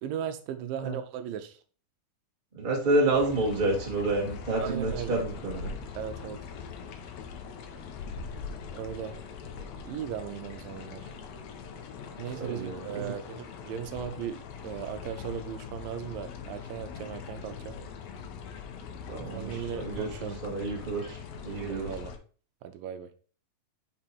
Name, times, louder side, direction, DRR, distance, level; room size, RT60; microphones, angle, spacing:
voice 1, 0.0-1.6 4.6-5.2 6.0-6.4 8.7-9.2 9.9-11.1 12.2-17.8 19.3-20.4 21.7-22.1 22.6-23.1, right 9 dB, 85° right, 2.3 m, -37 dB
voice 2, 2.5-5.7 12.4-13.0 19.1-21.2 21.4-21.9, right 2 dB, 25° right, 1.1 m, -29 dB
sound 1, 3.1-22.2, left 6 dB, 80° left, 1.5 m, -42 dB
6.0 x 4.3 x 4.4 m
omnidirectional pair, 4.1 m